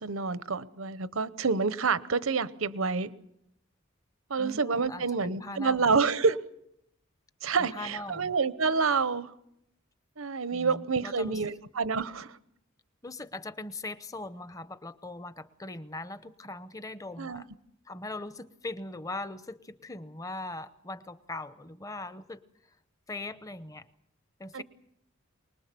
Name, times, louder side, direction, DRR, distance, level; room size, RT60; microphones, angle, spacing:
voice 1, 0.0-3.1 4.3-6.4 7.4-9.3 10.2-12.4 17.2-17.4 24.5-24.6, right 4 dB, 85° right, 0.9 m, -28 dB
voice 2, 4.4-5.8 7.6-8.3 10.5-11.6 13.0-17.5 17.9-22.4 23.1-23.9 24.4-24.6, left 2 dB, 15° left, 0.7 m, -40 dB
24.0 x 20.0 x 6.9 m
head